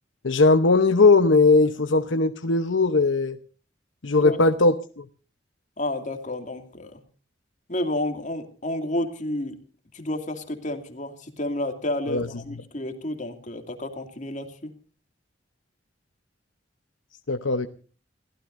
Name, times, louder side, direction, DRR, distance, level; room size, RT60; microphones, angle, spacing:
voice 1, 0.2-3.4 4.0-5.0 12.1-12.3 17.3-17.7, left 3 dB, 85° left, 8 dB, 0.9 m, -19 dB
voice 2, 5.8-7.0 7.7-9.6 9.9-14.7, left 1 dB, 40° left, 6 dB, 2.5 m, -31 dB
29.0 x 16.0 x 2.6 m, 0.39 s
head